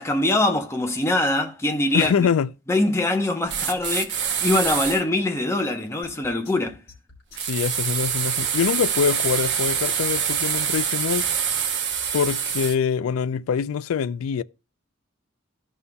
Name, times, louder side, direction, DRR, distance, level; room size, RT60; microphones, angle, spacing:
voice 1, 0.0-2.3 2.7-6.8, left 2 dB, 15° left, 0.8 m, -23 dB
voice 2, 1.9-2.5 7.4-11.3 12.1-14.4, left 7 dB, 85° left, 0.3 m, -24 dB
sound 1, 3.5-5.0 7.4-12.8, right 7 dB, 55° right, 0.9 m, -25 dB
sound 2, 6.0-12.7, left 4 dB, 50° left, 3.3 m, -48 dB
13.5 x 5.5 x 2.2 m
head